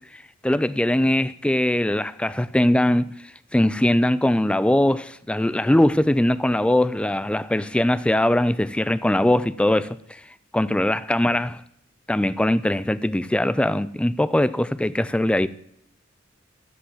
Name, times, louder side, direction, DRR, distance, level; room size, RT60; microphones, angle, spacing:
voice 1, 0.1-3.1 3.5-10.2 10.5-11.6 12.1-15.5, left 1 dB, 5° left, 0.3 m, -21 dB
11.5 x 5.1 x 7.3 m
head